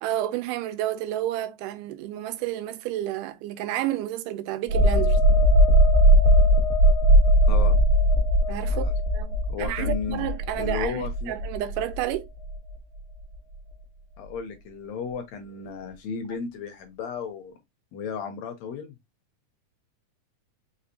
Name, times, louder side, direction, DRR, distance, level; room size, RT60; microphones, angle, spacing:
voice 1, 0.0-5.2 8.5-8.9 9.1-12.3, right 13 dB, 90° right, 2.2 m, -30 dB
sound 1, 4.7-12.1 12.5-12.7, equal, 45° right, 1.1 m, -19 dB
voice 2, 7.5-7.8 8.7-8.9 9.5-10.3 10.6-11.4 14.2-17.5 17.9-19.0, left 6 dB, 75° left, 1.7 m, -34 dB
5.2 x 3.4 x 2.7 m
omnidirectional pair, 3.6 m